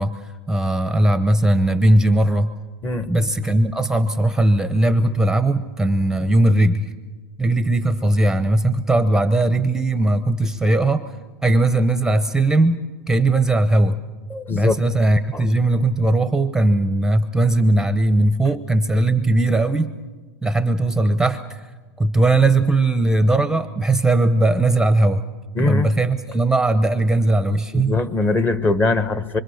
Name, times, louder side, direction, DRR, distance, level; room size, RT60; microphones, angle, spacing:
voice 1, 0.0-2.5 3.0-6.9 7.4-11.0 11.4-14.0 14.5-19.9 20.4-21.6 22.0-25.2 25.6-27.9, right 2 dB, 5° right, 10 dB, 0.9 m, -18 dB
voice 2, 2.8-3.3 14.3-14.8 15.3-15.4 25.5-25.9 27.7-29.4, left 3 dB, 15° left, 12 dB, 1.1 m, -21 dB
25.0 x 24.5 x 6.5 m, 1.3 s
hypercardioid pair, 120°, 12 cm